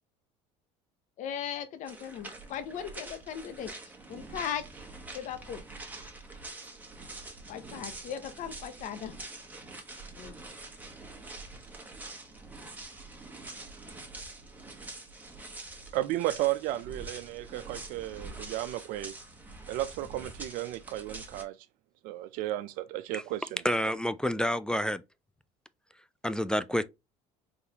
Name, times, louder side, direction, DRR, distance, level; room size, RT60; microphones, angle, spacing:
voice 1, 1.2-4.7 5.1-5.6 7.5-9.1 10.2-10.3, left 9 dB, 55° left, 0.8 m, -38 dB
sound 1, 1.9-21.4, right 2 dB, 10° right, 1.2 m, -45 dB
voice 2, 15.9-19.1 19.7-21.7 22.0-23.6, right 15 dB, 65° right, 0.5 m, -33 dB
voice 3, 23.6-25.0 26.2-26.8, equal, 5° left, 0.3 m, -28 dB
4.0 x 3.4 x 2.8 m
supercardioid pair, 95°, 16 cm